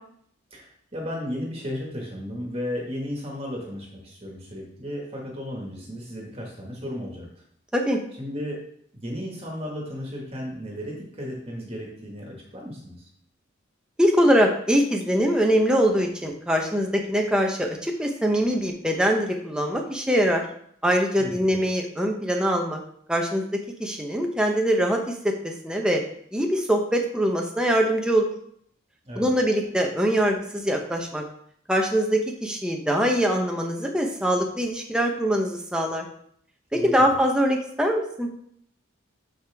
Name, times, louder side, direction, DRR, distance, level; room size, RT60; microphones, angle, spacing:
voice 1, 0.5-7.3 8.2-8.6 8.9-13.1 21.2-21.6 29.1-29.3 36.7-37.1, equal, 30° right, -1 dB, 1.8 m, -34 dB
voice 2, 14.0-20.4 20.8-22.8 23.1-23.4 23.8-26.0 26.3-28.3 29.2-31.2 31.7-36.1 36.7-38.3, equal, 5° right, 1 dB, 0.9 m, -23 dB
13.0 x 5.0 x 3.6 m, 0.66 s
head